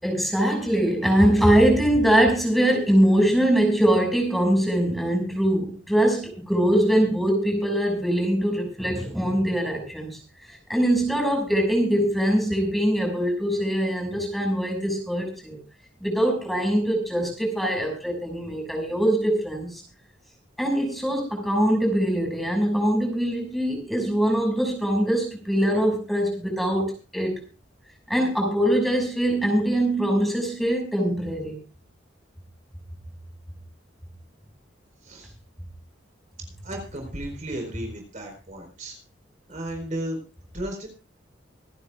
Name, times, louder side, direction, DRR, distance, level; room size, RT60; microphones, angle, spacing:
voice 1, 0.0-10.2 10.7-15.6 16.0-19.8 20.6-27.4 28.1-31.6, right 1 dB, ahead, 1 dB, 6.2 m, -22 dB
voice 2, 35.0-35.3 36.6-39.0 39.5-40.2 40.5-40.9, right 1 dB, 45° right, 3 dB, 4.5 m, -34 dB
26.5 x 11.0 x 2.5 m, 0.32 s
head